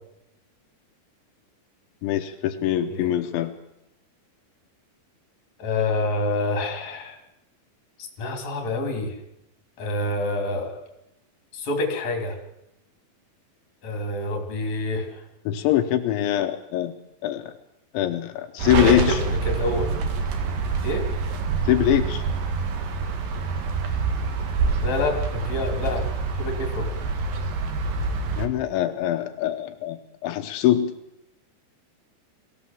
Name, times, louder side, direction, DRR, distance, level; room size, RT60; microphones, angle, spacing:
voice 1, 2.0-3.5 15.5-16.9 17.2-17.5 17.9-19.2 21.6-22.2 28.4-30.9, left 12 dB, 85° left, 6 dB, 3.3 m, -23 dB
voice 2, 5.6-7.2 8.0-9.2 9.8-10.8 11.5-12.4 13.8-15.2 18.8-19.2 19.4-19.9 20.8-21.1 24.8-26.1 26.4-26.9, left 2 dB, 40° left, 4 dB, 4.1 m, -27 dB
sound 1, 18.6-28.5, right 4 dB, 60° right, 3.2 m, -26 dB
23.0 x 16.5 x 7.5 m, 0.85 s
omnidirectional pair, 5.2 m